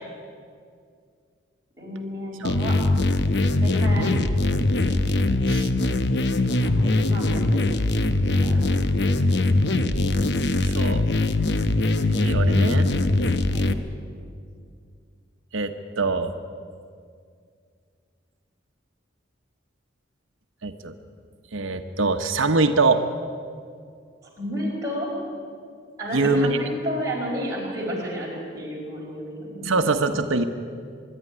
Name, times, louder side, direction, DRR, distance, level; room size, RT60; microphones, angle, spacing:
voice 1, 1.8-2.8 3.6-4.2 6.6-7.6 8.3-8.9 13.5-13.7 24.4-25.1 26.0-29.7, equal, 15° right, -4 dB, 5.4 m, -31 dB
sound 1, 2.4-13.7, left 2 dB, 60° left, 0.9 m, -21 dB
voice 2, 10.6-11.0 12.2-12.9 15.5-16.3 20.6-20.9 21.5-23.0 26.1-26.6 29.6-30.4, right 3 dB, 90° right, 6 dB, 1.0 m, -23 dB
24.5 x 11.0 x 9.9 m, 2.2 s
head